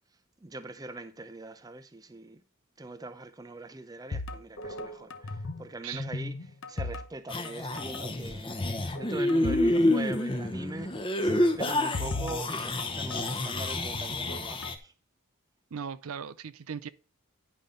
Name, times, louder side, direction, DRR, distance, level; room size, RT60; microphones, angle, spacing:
voice 1, 0.4-2.4 2.8-14.9, right 2 dB, 15° right, 0.6 m, -42 dB
sound 1, 4.1-5.7 5.9-7.5 7.8-8.0 8.6-9.7 10.0-10.1 11.3-13.4 13.9-14.8, left 2 dB, 70° left, 0.9 m, -37 dB
sound 2, 7.3-14.7, left 1 dB, 25° left, 0.8 m, -28 dB
voice 2, 15.7-16.9, right 7 dB, 85° right, 0.5 m, -38 dB
10.0 x 5.4 x 3.8 m
head